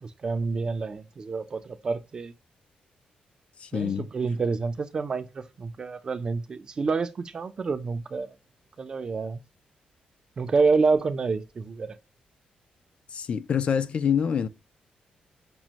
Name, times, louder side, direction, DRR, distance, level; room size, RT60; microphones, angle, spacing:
voice 1, 0.0-2.3 3.7-8.3 8.8-9.4 10.4-12.0, right 4 dB, 30° right, 0.4 m, -28 dB
voice 2, 3.6-4.1 13.1-14.5, left 7 dB, 45° left, 0.3 m, -26 dB
6.0 x 2.1 x 2.7 m
wide cardioid pair, 175°, 3 cm